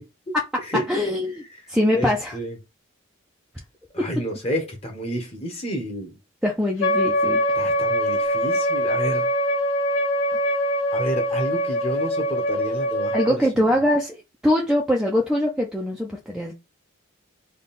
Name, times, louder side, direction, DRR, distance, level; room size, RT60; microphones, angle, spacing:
voice 1, 0.9-2.3 4.0-4.1 6.4-7.7 13.1-16.5, left 1 dB, 5° right, 0.4 m, -23 dB
voice 2, 1.9-2.6 3.9-6.2 7.5-9.3 10.5-10.6 10.9-13.6, equal, 30° left, 0.9 m, -30 dB
Wind instrument woodwind instrument, 6.8-13.4, equal, 75° left, 0.6 m, -23 dB
3.5 x 2.3 x 4.1 m
head